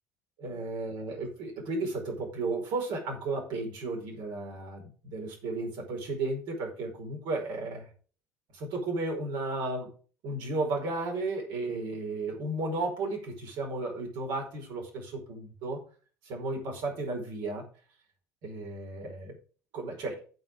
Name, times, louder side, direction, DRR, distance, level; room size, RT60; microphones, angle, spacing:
voice 1, 0.4-7.9 8.5-9.9 10.2-15.8 16.2-17.7 18.4-19.4 19.7-20.2, right 2 dB, 50° right, 1 dB, 5.1 m, -34 dB
14.5 x 5.5 x 5.1 m, 0.38 s
figure-of-eight pair, 65°, 10 cm